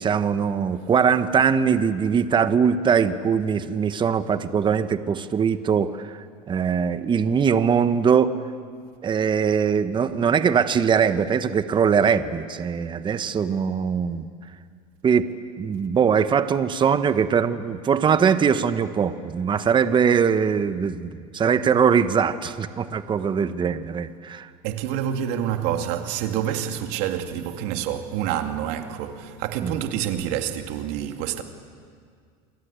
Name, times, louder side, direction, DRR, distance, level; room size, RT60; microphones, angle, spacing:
voice 1, 0.0-6.2 6.5-8.3 9.0-14.2 15.0-15.3 15.6-24.5 29.6-29.8, right 7 dB, 25° right, 1.1 m, -21 dB
voice 2, 24.6-31.4, right 10 dB, 65° right, 2.4 m, -27 dB
28.5 x 22.5 x 8.3 m
supercardioid pair, 120°, 18 cm